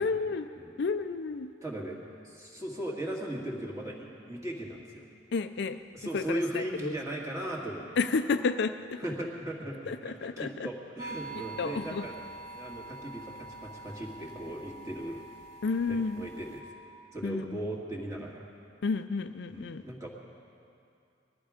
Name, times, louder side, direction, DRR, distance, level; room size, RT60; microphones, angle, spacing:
voice 1, 0.0-0.5 0.8-1.5 5.3-5.8 6.1-6.9 8.0-9.0 9.9-10.7 11.4-12.1 15.6-16.3 17.2-17.6 18.8-19.8, left 4 dB, 55° left, 9 dB, 0.4 m, -31 dB
voice 2, 1.6-2.0 2.2-5.1 5.9-7.8 9.0-12.1 12.5-15.2 15.9-16.6 17.1-18.4 19.5-20.1, right 1 dB, 15° right, -3 dB, 2.0 m, -37 dB
sound 1, 11.0-16.6, right 3 dB, 40° right, 2.1 m, -45 dB
21.0 x 13.5 x 5.0 m, 2.6 s
head